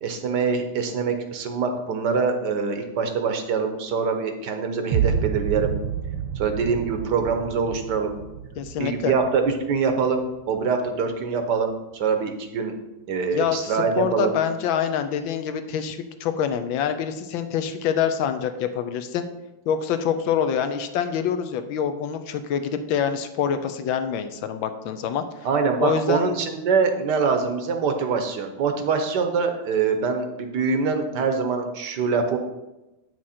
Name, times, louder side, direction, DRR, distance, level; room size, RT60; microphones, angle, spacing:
voice 1, 0.0-5.7 6.4-8.1 8.8-12.7 13.1-14.4 25.4-32.4, right 5 dB, 60° right, 6 dB, 1.3 m, -24 dB
sound 1, 4.9-10.9, right 8 dB, 85° right, 1.6 m, -30 dB
voice 2, 8.6-9.1 13.3-19.2 19.7-25.2 25.8-26.2, left 8 dB, 70° left, 9 dB, 1.4 m, -26 dB
8.9 x 6.2 x 4.3 m, 0.99 s
omnidirectional pair, 2.4 m